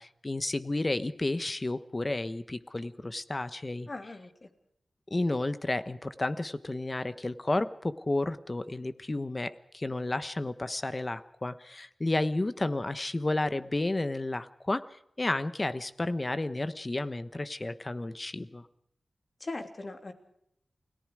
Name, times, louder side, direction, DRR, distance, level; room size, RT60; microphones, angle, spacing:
voice 1, 0.0-3.9 5.1-14.9 15.2-18.6, left 2 dB, 30° left, 12 dB, 1.1 m, -32 dB
voice 2, 3.9-4.5 19.4-20.1, left 2 dB, 45° left, 5 dB, 3.1 m, -39 dB
29.0 x 18.5 x 5.0 m, 0.73 s
wide cardioid pair, 70°, 0 cm